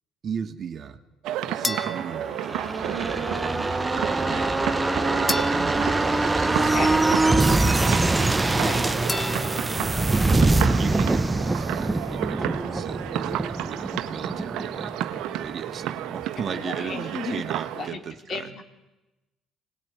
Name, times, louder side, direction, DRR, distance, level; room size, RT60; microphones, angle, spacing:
voice 1, 0.2-1.0 1.5-8.9 9.7-14.9 15.3-18.5, right 7 dB, 50° right, 7 dB, 2.0 m, -37 dB
sound 1, 1.2-17.9, right 12 dB, 70° right, 1.4 m, -32 dB
sound 2, 1.6-3.1 5.3-7.1 9.1-10.2, left 2 dB, 20° left, 0.9 m, -35 dB
sound 3, 2.3-15.8 16.1-16.2, right 2 dB, 15° right, 1.0 m, -24 dB
voice 2, 6.6-7.0 8.5-8.9 16.4-17.5 17.8-18.0 18.3-18.6, left 4 dB, 50° left, 5 dB, 3.8 m, -34 dB
25.0 x 19.5 x 9.7 m, 1.0 s
supercardioid pair, 70°, 0 cm